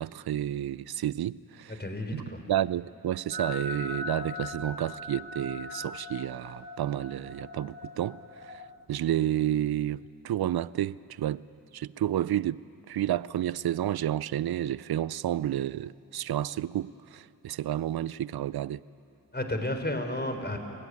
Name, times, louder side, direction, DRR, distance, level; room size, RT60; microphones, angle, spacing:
voice 1, 0.0-1.8 2.1-8.6 8.9-11.4 11.7-12.6 12.9-18.8, right 12 dB, 85° right, 0.5 m, -30 dB
voice 2, 1.8-2.4 19.3-20.6, left 1 dB, 30° left, 4.0 m, -32 dB
sound 1, 3.3-8.7, left 2 dB, 70° left, 4.2 m, -40 dB
27.5 x 16.0 x 9.6 m
cardioid pair, 40°, 36 cm